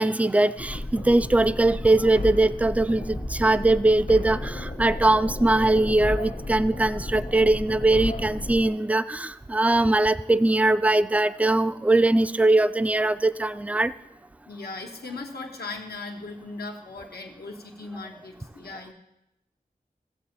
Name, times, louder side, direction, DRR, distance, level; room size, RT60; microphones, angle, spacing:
voice 1, 0.0-13.9, right 2 dB, 10° right, 14 dB, 0.3 m, -21 dB
sound 1, 0.6-8.7, left 2 dB, 75° left, 1.4 m, -33 dB
voice 2, 14.5-18.9, left 3 dB, 90° left, 1 dB, 1.1 m, -38 dB
16.0 x 7.7 x 2.9 m, 0.88 s
wide cardioid pair, 40°, 16 cm